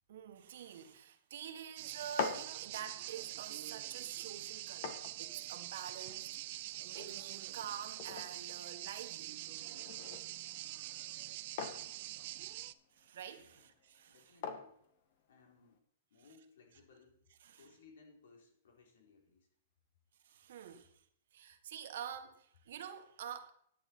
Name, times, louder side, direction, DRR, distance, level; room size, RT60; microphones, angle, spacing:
voice 1, 0.1-9.3 12.9-14.4 17.4-17.6 20.2-21.0 21.3-23.5, right 9 dB, 70° right, 1.7 m, -48 dB
sound 1, 1.8-12.7, right 16 dB, 50° right, 0.5 m, -45 dB
sound 2, 1.9-15.8, left 6 dB, 55° left, 1.6 m, -47 dB
voice 2, 13.3-13.7 14.1-14.8 15.3-15.8 16.1-19.5, left 4 dB, 85° left, 3.8 m, -63 dB
10.5 x 10.0 x 4.6 m
supercardioid pair, 155°, 0 cm